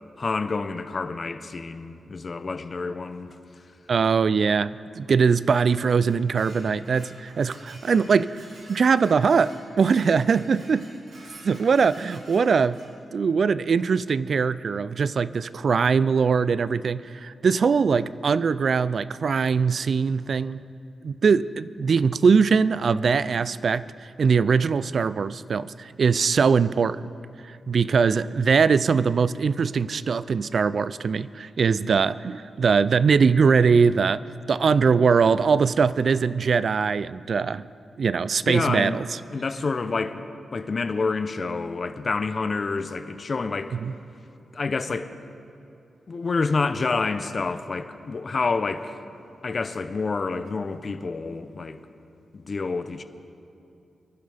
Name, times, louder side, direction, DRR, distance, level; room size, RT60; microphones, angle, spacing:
voice 1, 0.2-3.3 38.4-39.0 39.3-40.3 40.5-43.8 44.5-45.1 46.1-49.0 49.4-51.8 52.3-53.0, left 4 dB, 50° left, 10 dB, 0.7 m, -28 dB
voice 2, 3.9-10.9 11.4-12.8 13.1-20.6 21.0-23.9 24.2-27.0 27.7-34.2 34.5-37.7 38.0-39.0 43.7-43.9, right 5 dB, 60° right, 17 dB, 0.3 m, -21 dB
Dishes pots and pans, 5.2-12.9, right 1 dB, 85° right, 4.2 m, -49 dB
24.0 x 11.5 x 3.5 m, 2.7 s
cardioid pair, 75°, 0 cm